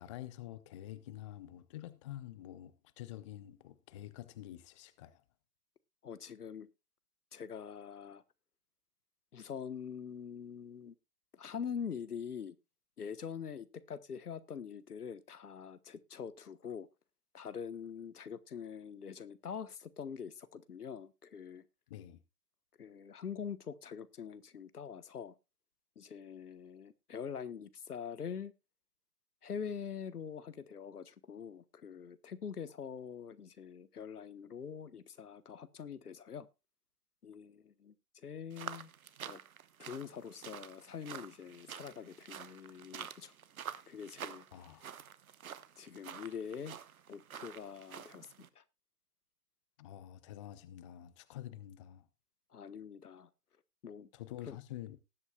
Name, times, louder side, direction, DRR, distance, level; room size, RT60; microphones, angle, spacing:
voice 1, 0.0-5.2 21.9-22.2 44.5-44.9 49.8-52.1 54.1-55.0, left 13 dB, 20° left, 0.6 m, -48 dB
voice 2, 6.0-6.7 7.3-8.2 9.3-10.9 11.3-12.6 13.0-16.9 17.3-21.6 22.8-25.3 26.0-28.5 29.4-36.5 37.2-38.9 39.3-39.4 39.8-43.3 43.9-44.4 45.8-46.8 47.1-48.3 48.5-48.6 52.5-53.3 53.8-54.1 54.4-54.6, left 7 dB, 75° left, 1.2 m, -44 dB
sound 1, 38.5-48.5, right 8 dB, 65° right, 1.2 m, -48 dB
19.0 x 8.3 x 2.3 m
figure-of-eight pair, 125°, 46 cm